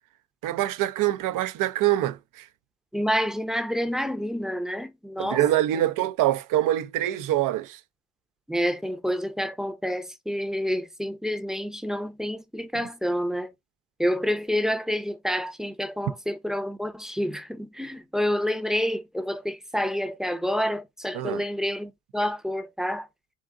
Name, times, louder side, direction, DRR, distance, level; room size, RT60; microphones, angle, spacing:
voice 1, 0.4-2.5 5.2-7.8 21.1-21.4, right 13 dB, 70° right, 0.7 m, -25 dB
voice 2, 2.9-5.4 8.5-13.5 14.0-23.1, equal, ahead, 0.7 m, -28 dB
3.8 x 3.7 x 3.7 m
cardioid pair, 100°, 33 cm